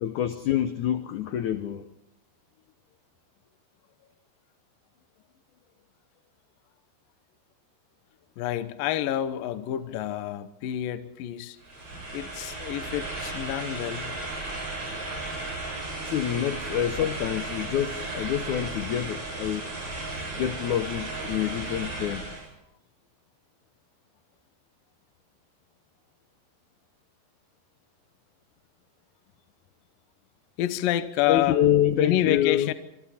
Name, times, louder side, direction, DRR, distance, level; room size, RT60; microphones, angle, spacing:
voice 1, 0.0-1.9 16.0-19.7 20.4-22.3 31.3-32.7, left 11 dB, 85° left, 1.7 m, -26 dB
voice 2, 8.4-11.6 12.1-14.1 30.6-31.6 31.9-32.7, left 12 dB, 70° left, 2.5 m, -28 dB
sound 1, 11.6-22.5, right 2 dB, 35° right, 9.1 m, -35 dB
26.0 x 25.5 x 4.3 m
omnidirectional pair, 4.7 m